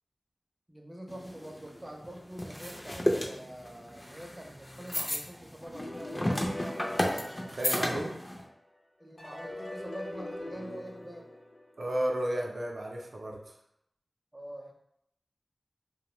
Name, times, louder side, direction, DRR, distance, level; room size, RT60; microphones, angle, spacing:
voice 1, 0.7-6.3 9.0-11.3 14.3-14.7, right 1 dB, 25° right, 0 dB, 0.5 m, -45 dB
sound 1, 1.1-8.4, left 1 dB, 30° left, 0.4 m, -33 dB
sound 2, 5.7-8.5 9.2-12.0, left 1 dB, 60° left, 0.8 m, -42 dB
voice 2, 7.1-8.2 11.8-13.4, right 1 dB, 85° right, 0 dB, 0.4 m, -33 dB
2.5 x 2.0 x 3.0 m, 0.77 s
wide cardioid pair, 55°, 0 cm